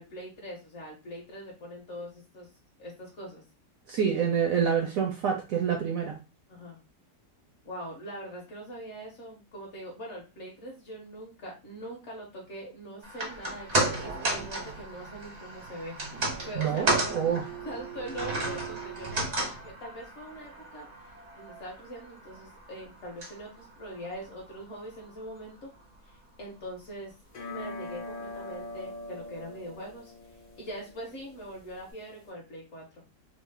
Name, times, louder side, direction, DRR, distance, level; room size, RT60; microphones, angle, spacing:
voice 1, 0.0-2.5 2.8-3.4 6.5-6.8 7.6-17.4 17.6-19.3 19.6-20.9 21.3-25.7 26.0-27.1 27.5-33.1, equal, 55° left, -1 dB, 0.9 m, -42 dB
voice 2, 3.9-6.1 16.5-17.5, right 7 dB, 70° right, 2 dB, 0.8 m, -27 dB
sound 1, 13.0-25.4 25.7-25.8, right 2 dB, 45° right, 0.5 m, -34 dB
sound 2, 27.3-32.3, left 2 dB, 80° left, 0.4 m, -43 dB
3.0 x 2.0 x 3.2 m, 0.29 s
omnidirectional pair, 1.8 m